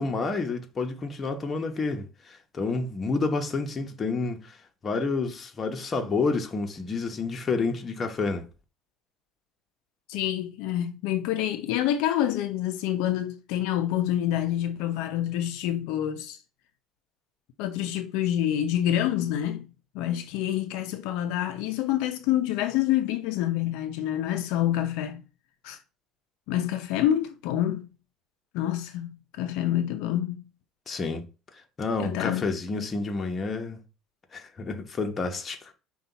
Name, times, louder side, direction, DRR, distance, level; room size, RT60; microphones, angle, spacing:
voice 1, 0.0-4.6 4.8-8.5 30.9-31.3 31.8-33.8 34.3-35.7, left 3 dB, 30° left, 0.9 m, -29 dB
voice 2, 10.1-16.4 17.6-19.7 19.9-25.2 25.6-25.8 26.5-27.9 28.5-30.4 30.9-31.0 32.0-32.6, left 12 dB, 80° left, 0.5 m, -27 dB
5.5 x 2.3 x 4.0 m
supercardioid pair, 105°, 0 cm